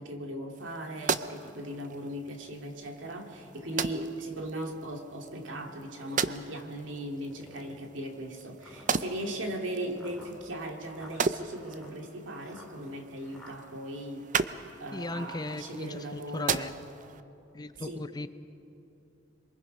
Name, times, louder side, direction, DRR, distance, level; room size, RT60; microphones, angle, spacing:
voice 1, 0.0-14.3 14.8-16.7 17.8-18.0, right 1 dB, 75° right, 3 dB, 2.3 m, -38 dB
sound 1, 0.5-17.2, right 6 dB, 45° right, 0.6 m, -37 dB
sound 2, 3.3-4.0 4.7-4.8 5.8-6.5 7.2-7.9 8.6-13.6, left 1 dB, 5° left, 3.1 m, -54 dB
voice 2, 14.9-16.8 17.5-18.3, left 2 dB, 20° left, 12 dB, 0.5 m, -37 dB
27.5 x 23.0 x 5.4 m, 2.9 s
head